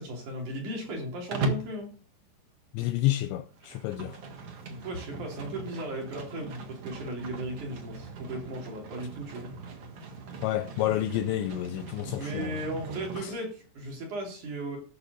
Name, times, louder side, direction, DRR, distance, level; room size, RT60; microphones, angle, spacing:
voice 1, 0.0-1.9 4.7-9.5 12.1-14.8, right 1 dB, 45° right, 3.7 m, -36 dB
Livestock farm animals working animals, 1.3-1.8 3.5-13.3, right 3 dB, 80° right, 1.3 m, -39 dB
voice 2, 2.7-4.2 10.4-12.6 13.2-13.3, left 14 dB, 80° left, 2.6 m, -29 dB
12.5 x 6.1 x 6.7 m
omnidirectional pair, 5.6 m